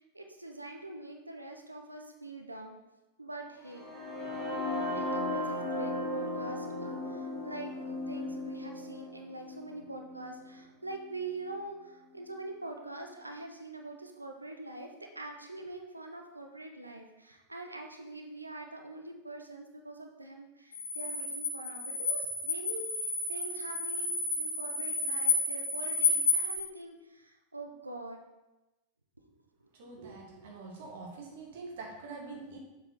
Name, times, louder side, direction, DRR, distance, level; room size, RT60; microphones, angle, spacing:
voice 1, 0.1-2.8 3.2-3.8 4.9-14.9 15.2-28.2, right 2 dB, 85° right, 3 dB, 0.7 m, -44 dB
sound 1, 3.6-11.5, left 1 dB, 20° left, 2.3 m, -36 dB
sound 2, 20.7-26.6, left 3 dB, 65° left, 1.4 m, -31 dB
voice 2, 29.7-32.6, right 3 dB, 55° right, 0 dB, 1.6 m, -45 dB
7.1 x 4.1 x 4.5 m, 1.0 s
figure-of-eight pair, 90°, 0 cm